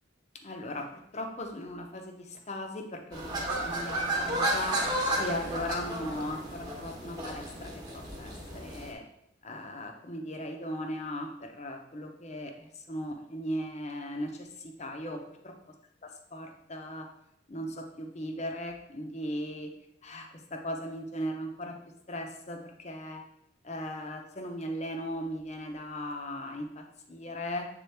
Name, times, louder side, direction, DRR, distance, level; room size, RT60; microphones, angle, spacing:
voice 1, 0.4-4.8 5.2-9.0 9.4-15.5 16.3-17.1 17.5-19.7 20.0-21.8 22.1-23.2 23.6-27.7, left 1 dB, 35° left, 4 dB, 0.7 m, -38 dB
sound 1, 3.1-8.9, right 1 dB, 25° right, 1.1 m, -33 dB
7.7 x 3.7 x 3.4 m, 0.79 s
head